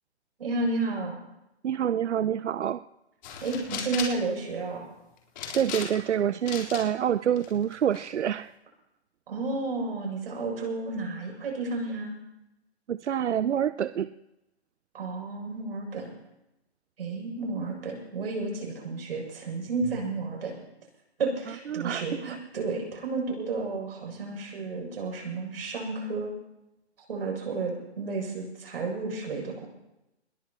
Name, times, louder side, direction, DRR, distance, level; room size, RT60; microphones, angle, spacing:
voice 1, 0.4-1.2 3.4-4.9 9.3-12.2 14.9-16.1 17.0-20.6 21.2-26.3 27.1-29.7, right 3 dB, 60° right, 0 dB, 7.7 m, -32 dB
voice 2, 1.6-2.8 5.5-8.5 12.9-14.1 21.7-22.4, right 9 dB, 90° right, 14 dB, 0.6 m, -27 dB
sound 1, 3.2-4.2 5.4-6.1 6.5-6.8 7.4-8.0, left 6 dB, 40° left, 4.1 m, -36 dB
21.5 x 21.5 x 3.1 m, 0.91 s
hypercardioid pair, 160°, 34 cm